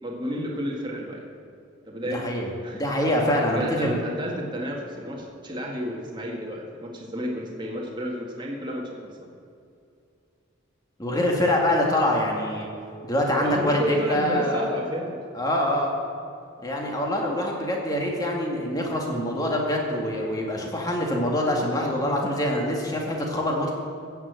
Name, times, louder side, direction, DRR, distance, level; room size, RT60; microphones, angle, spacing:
voice 1, 0.0-1.3 1.9-2.3 2.6-2.8 3.5-9.3 13.4-15.2, equal, 25° right, -2 dB, 1.8 m, -31 dB
voice 2, 2.1-2.5 2.7-4.0 11.0-12.7 13.0-14.7 15.3-15.9 16.6-23.7, left 1 dB, 20° left, -1 dB, 2.1 m, -25 dB
15.0 x 6.9 x 8.2 m, 2.5 s
head